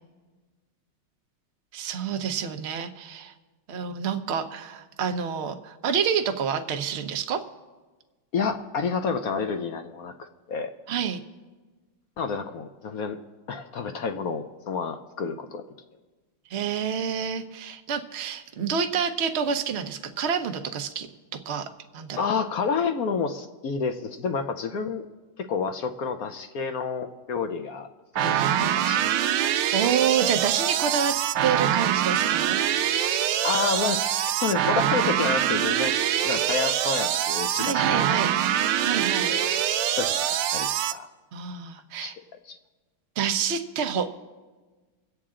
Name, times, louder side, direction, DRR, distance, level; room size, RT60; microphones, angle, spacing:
voice 1, 1.7-3.3 3.7-7.4 10.9-11.2 16.5-21.1 21.5-21.7 21.9-22.2 29.7-31.1 31.4-32.6 37.6-38.3 38.8-39.3 41.3-42.1 43.2-44.2, right 7 dB, 65° right, 7 dB, 0.6 m, -28 dB
voice 2, 8.3-10.7 12.2-13.2 13.5-15.6 22.2-25.0 25.4-27.9 28.2-29.0 29.4-29.5 33.4-35.9 36.2-38.2 38.9-39.5 40.0-40.2 40.5-41.1 42.0-42.1 42.5-42.6, left 5 dB, 65° left, 7 dB, 0.9 m, -29 dB
sound 1, 28.2-40.9, right 10 dB, 90° right, 1.5 m, -24 dB
24.5 x 8.6 x 3.7 m, 1.3 s
omnidirectional pair, 2.3 m